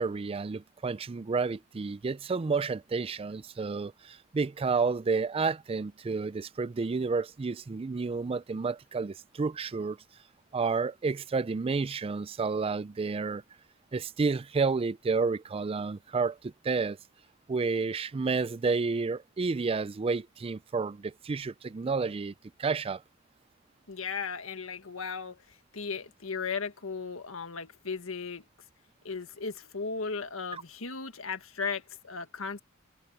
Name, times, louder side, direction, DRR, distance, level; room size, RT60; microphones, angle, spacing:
voice 1, 0.0-10.0 10.5-13.4 13.9-17.0 17.5-22.3 22.6-23.0 30.5-30.6, right 4 dB, 30° right, 0.4 m, -30 dB
voice 2, 23.9-25.4 25.7-28.5 29.1-32.6, left 5 dB, 90° left, 1.6 m, -36 dB
head